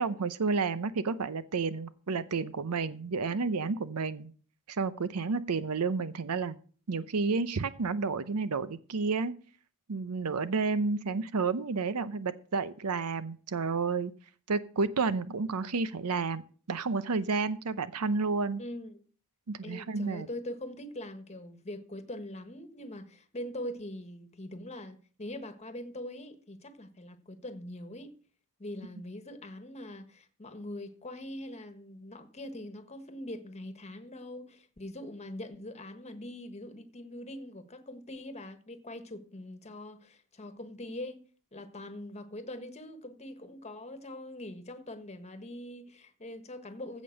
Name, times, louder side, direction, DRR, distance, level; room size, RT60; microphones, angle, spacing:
voice 1, 0.0-4.3 4.7-6.6 6.9-9.3 9.9-14.1 14.5-16.4 16.7-18.6 19.5-20.3, right 4 dB, 85° right, 0.7 m, -31 dB
voice 2, 18.6-19.0 19.6-28.1 28.6-41.2 41.5-47.0, left 1 dB, 30° left, 1.4 m, -42 dB
15.5 x 5.3 x 6.5 m
head